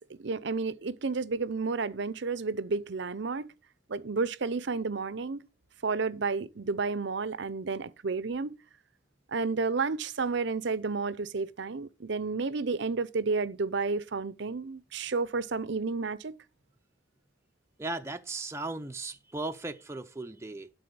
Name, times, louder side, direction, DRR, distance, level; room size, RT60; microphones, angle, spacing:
voice 1, 0.2-3.5 3.9-5.4 5.8-8.5 9.3-16.4, right 4 dB, 60° right, 0.6 m, -31 dB
voice 2, 17.8-20.7, right 2 dB, 15° right, 0.5 m, -37 dB
12.0 x 4.1 x 6.7 m
head